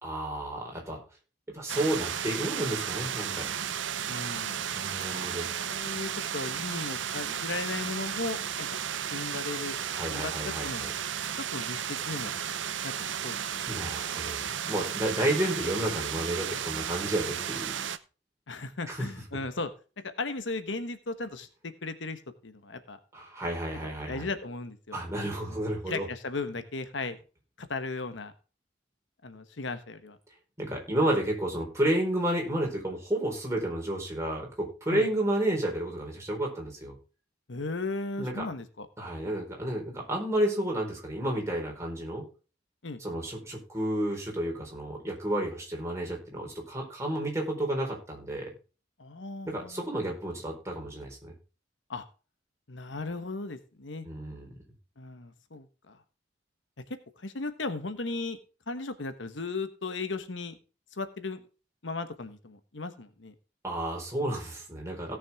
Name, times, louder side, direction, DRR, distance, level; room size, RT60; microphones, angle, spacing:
voice 1, 0.0-1.0 1.5-3.5 4.7-5.5 9.9-10.9 13.7-17.8 18.9-19.1 23.1-24.3 24.9-26.1 30.6-37.0 38.2-38.4 39.0-42.3 43.0-48.5 49.4-51.3 54.0-54.5 63.6-65.2, right 1 dB, 15° right, -1 dB, 4.2 m, -31 dB
sound 1, 1.7-18.0, right 8 dB, 90° right, 0.7 m, -34 dB
voice 2, 4.1-4.7 5.6-8.8 9.1-9.8 10.1-10.9 11.5-12.3 12.8-13.6 18.5-19.7 20.0-23.0 23.8-25.0 25.9-27.2 27.6-28.3 29.2-30.2 34.9-35.1 37.5-38.9 42.8-43.0 49.0-50.1 51.9-52.0 52.7-54.1 55.0-56.0 57.2-58.4 58.7-60.6 60.9-61.5 61.8-63.3, left 3 dB, 85° left, 10 dB, 1.2 m, -36 dB
17.0 x 6.4 x 3.5 m, 0.34 s
head